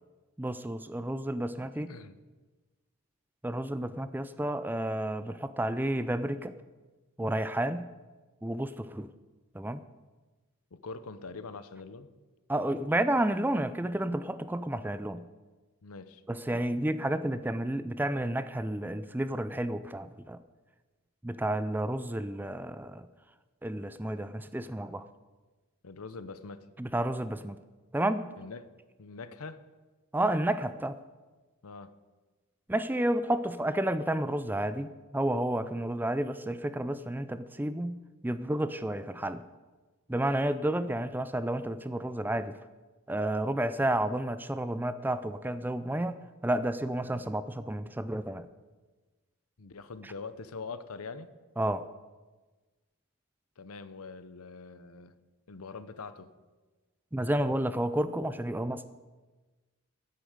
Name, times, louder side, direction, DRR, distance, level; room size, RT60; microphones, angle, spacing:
voice 1, 0.4-1.9 3.4-6.5 7.2-7.9 8.4-9.1 9.5-9.8 12.5-15.2 16.3-20.4 21.2-23.1 23.6-25.0 26.8-27.6 27.9-28.3 30.1-31.0 32.7-34.9 35.1-38.0 38.2-39.4 40.1-42.5 43.1-48.4 51.6-51.8 57.1-58.9, right 1 dB, 10° right, 13 dB, 0.4 m, -31 dB
voice 2, 10.7-12.1 15.8-16.2 25.8-26.7 28.4-28.7 29.0-29.6 31.6-31.9 49.6-51.3 53.6-55.2 55.5-56.3, left 4 dB, 80° left, 13 dB, 0.8 m, -43 dB
10.0 x 8.2 x 9.4 m, 1.3 s
head